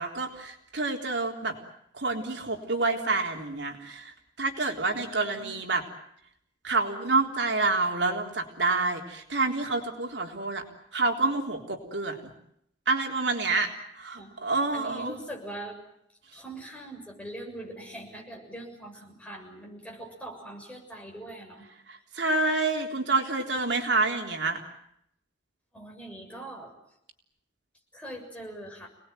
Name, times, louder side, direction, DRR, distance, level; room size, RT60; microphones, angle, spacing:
voice 1, 0.0-1.6 1.9-5.8 6.6-10.6 10.9-12.3 12.9-13.7 14.0-15.1 21.9-24.6, right 3 dB, 70° right, 2 dB, 3.8 m, -28 dB
voice 2, 4.9-5.6 13.4-13.7 14.2-14.4 14.7-15.8 16.3-21.7 24.0-24.1 25.7-26.7 27.9-28.9, right 1 dB, 5° left, 0 dB, 7.2 m, -42 dB
29.5 x 20.0 x 9.3 m, 0.75 s
head